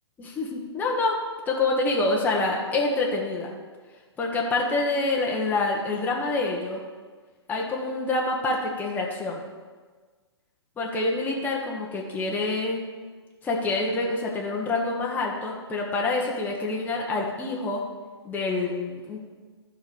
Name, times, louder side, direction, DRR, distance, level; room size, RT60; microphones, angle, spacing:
voice 1, 0.2-1.2 1.5-3.5 4.2-6.8 7.5-9.4 10.8-12.8 13.4-17.8 18.2-19.2, left 2 dB, 10° left, -2 dB, 1.1 m, -26 dB
12.0 x 5.2 x 5.1 m, 1.4 s
figure-of-eight pair, 120°, 14 cm